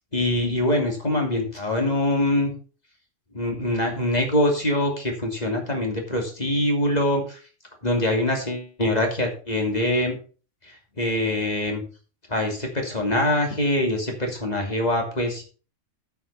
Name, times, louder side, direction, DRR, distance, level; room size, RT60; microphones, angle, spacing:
voice 1, 0.1-2.5 3.3-7.4 7.8-10.1 11.0-11.8 12.3-15.4, left 1 dB, 30° left, 2 dB, 2.9 m, -24 dB
8.9 x 7.2 x 5.5 m, 0.37 s
omnidirectional pair, 1.5 m